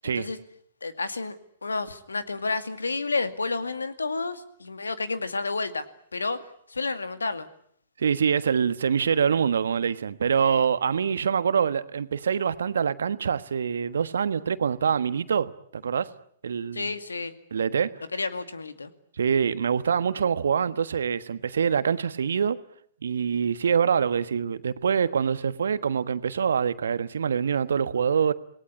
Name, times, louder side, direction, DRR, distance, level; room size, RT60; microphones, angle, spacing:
voice 1, 0.8-1.4 1.6-5.9 6.1-6.4 6.7-7.5 10.4-10.6 16.7-17.3 18.1-18.9, left 3 dB, 80° left, 2.2 m, -30 dB
voice 2, 8.0-16.1 16.4-16.9 17.5-17.9 19.2-22.6 23.0-28.3, right 7 dB, 70° right, 1.4 m, -25 dB
27.0 x 19.0 x 9.6 m
figure-of-eight pair, 110°, 0 cm